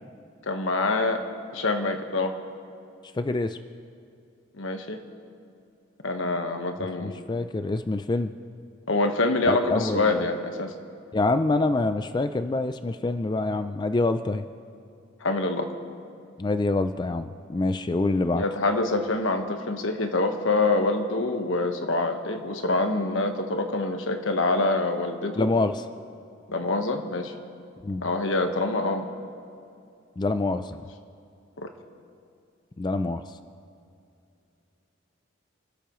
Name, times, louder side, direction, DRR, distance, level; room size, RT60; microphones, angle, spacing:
voice 1, 0.5-1.2 1.5-2.3 4.6-5.0 6.0-7.1 8.9-10.7 15.2-15.7 18.3-25.5 26.5-27.3 28.0-29.0 31.6-31.7, left 2 dB, 80° left, 5 dB, 1.3 m, -25 dB
voice 2, 3.2-3.6 7.0-8.3 9.5-10.1 11.1-14.5 16.4-18.4 25.4-25.8 27.8-28.1 30.2-30.8 32.8-33.4, left 2 dB, 20° left, 10 dB, 0.3 m, -26 dB
30.0 x 13.0 x 3.1 m, 2.5 s
head